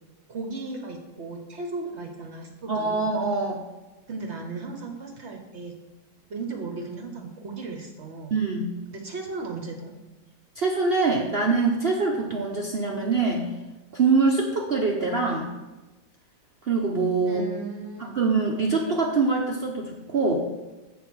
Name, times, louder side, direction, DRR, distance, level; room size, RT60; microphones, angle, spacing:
voice 1, 0.3-3.1 4.1-5.7 6.3-8.3 8.9-9.9 17.3-18.2, right 3 dB, 55° right, 2 dB, 0.8 m, -36 dB
voice 2, 2.7-3.6 8.3-8.7 10.6-13.5 13.9-15.5 16.6-17.4 18.0-20.4, right 4 dB, 75° right, -1 dB, 0.5 m, -24 dB
7.6 x 4.2 x 6.0 m, 1.1 s
omnidirectional pair, 2.0 m